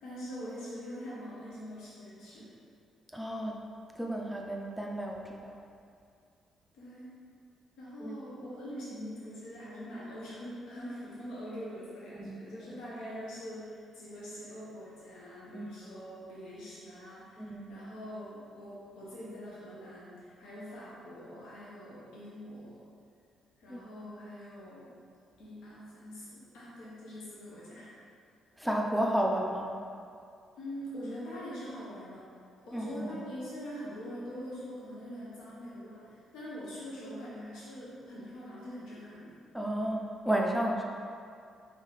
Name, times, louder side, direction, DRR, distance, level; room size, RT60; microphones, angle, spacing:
voice 1, 0.0-2.5 6.7-7.1 7.8-22.8 23.6-24.9 25.4-28.0 30.6-32.3 32.7-39.3, equal, 85° left, -8 dB, 0.9 m, -43 dB
voice 2, 3.1-3.6 4.0-5.6 8.0-8.2 12.2-12.3 15.5-15.7 17.4-17.7 23.7-23.8 28.6-29.8 32.7-33.2 39.5-40.8, right 1 dB, ahead, -1 dB, 0.4 m, -32 dB
4.1 x 3.5 x 3.2 m, 2.4 s
cardioid pair, 90°, 0 cm